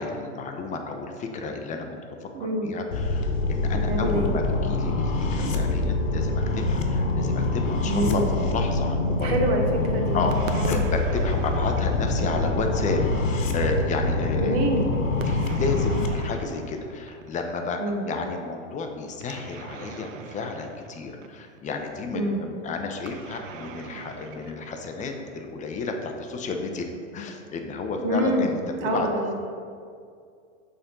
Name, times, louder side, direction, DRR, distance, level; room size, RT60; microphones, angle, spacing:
voice 1, 0.0-9.4 10.1-14.6 15.3-26.9 27.1-28.6 28.8-29.1, left 3 dB, 20° left, 4 dB, 0.6 m, -31 dB
voice 2, 2.3-2.7 3.9-4.3 5.4-5.6 7.8-8.3 9.2-10.2 10.5-10.8 14.4-14.9 16.4-16.6 17.8-18.0 22.1-22.4 28.0-28.5 28.8-29.3, right 1 dB, 50° right, 2 dB, 1.4 m, -26 dB
sound 1, 2.9-16.1, left 2 dB, 85° left, 1.0 m, -25 dB
sound 2, 10.3-13.0 15.2-17.6 19.2-21.7 23.0-25.5, right 6 dB, 80° right, 0.7 m, -41 dB
6.8 x 3.8 x 5.3 m, 2.3 s
hypercardioid pair, 120°, 38 cm